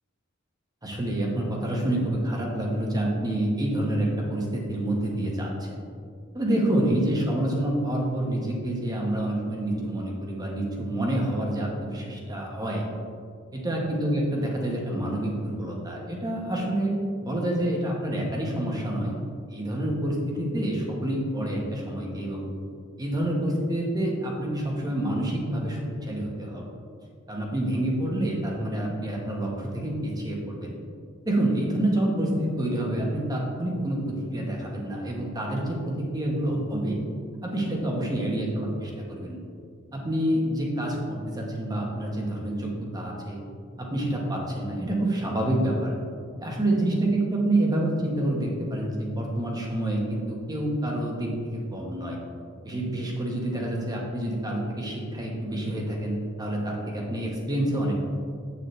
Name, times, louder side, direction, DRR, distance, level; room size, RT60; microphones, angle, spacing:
voice 1, 0.8-5.8 6.3-12.9 13.6-16.9 17.2-19.1 19.5-22.4 23.0-26.7 27.3-30.7 31.2-37.0 37.4-39.4 39.9-43.4 43.8-45.9 46.4-52.2 52.6-58.0, right 1 dB, 20° right, -1 dB, 1.2 m, -27 dB
8.4 x 6.8 x 3.3 m, 2.2 s
head